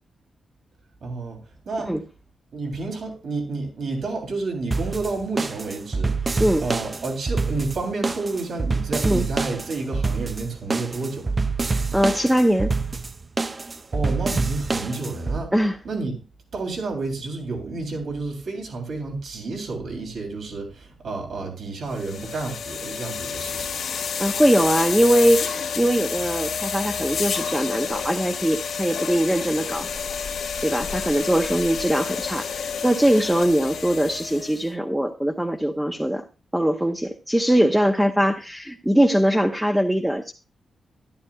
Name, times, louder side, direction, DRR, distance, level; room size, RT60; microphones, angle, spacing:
voice 1, 1.0-1.4 1.6-1.9 2.5-11.3 13.9-15.5 15.8-16.2 16.5-23.7, right 3 dB, 65° right, 3.2 m, -30 dB
sound 1, 4.7-15.4, right 4 dB, 30° right, 0.4 m, -26 dB
voice 2, 11.6-12.7 15.5-15.8 24.2-29.9 30.6-36.2 36.5-40.3, equal, 5° right, 0.8 m, -21 dB
sound 2, 21.9-34.6, left 6 dB, 90° left, 2.0 m, -30 dB
12.5 x 11.5 x 2.4 m
wide cardioid pair, 130°, 0 cm